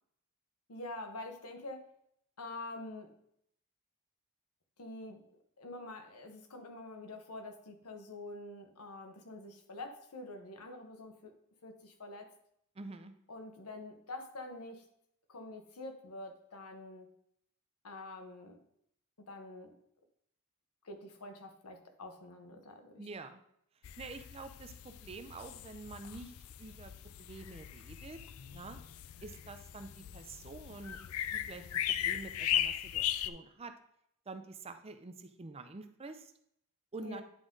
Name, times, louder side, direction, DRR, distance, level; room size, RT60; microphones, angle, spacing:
voice 1, 0.7-1.8 2.4-3.1 4.8-5.2 5.6-11.4 11.6-12.3 13.3-14.9 15.3-17.1 17.8-18.6 19.2-19.8 20.8-23.0 37.0-37.2, left 2 dB, 90° left, 5 dB, 1.1 m, -46 dB
voice 2, 12.8-13.1 23.0-23.4 24.0-26.9 27.2-28.2 28.5-28.8 29.2-31.0 31.3-31.7 32.0-33.7 34.3-36.3 36.9-37.2, right 3 dB, 25° right, 9 dB, 0.5 m, -47 dB
sound 1, 23.8-33.3, left 11 dB, 70° left, 0.4 m, -38 dB
9.9 x 3.8 x 3.7 m, 0.72 s
head